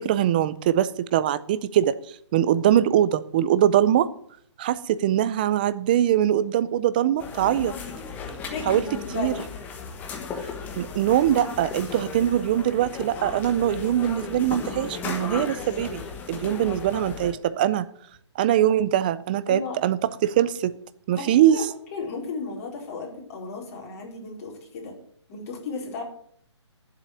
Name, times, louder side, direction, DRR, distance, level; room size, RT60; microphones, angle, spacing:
voice 1, 0.0-2.0 2.3-4.1 4.6-7.7 8.7-8.8 9.1-9.3 10.8-16.0 16.3-17.9 18.4-20.7 21.1-21.6, right 11 dB, 20° right, 16 dB, 0.4 m, -22 dB
sound 1, 7.2-17.3, left 5 dB, 10° left, 1.3 m, -35 dB
voice 2, 8.5-9.5 19.5-19.8 21.1-21.6 21.9-24.9 25.3-26.0, left 4 dB, 30° left, -1 dB, 4.4 m, -34 dB
10.0 x 7.8 x 9.2 m, 0.65 s
hypercardioid pair, 160°, 15 cm